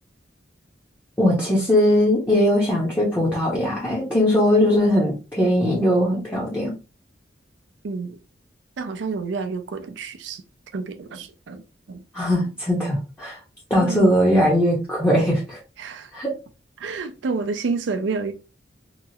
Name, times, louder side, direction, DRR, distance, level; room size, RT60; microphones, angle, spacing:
voice 1, 1.2-6.7 12.1-13.4 13.7-15.6 16.1-16.3, equal, 15° left, 0.7 m, -20 dB
voice 2, 7.8-8.2 8.8-10.4 10.7-12.0 12.4-12.5 13.8-14.2 15.8-16.1 16.8-18.3, right 4 dB, 85° right, 0.4 m, -29 dB
2.9 x 2.3 x 2.7 m
head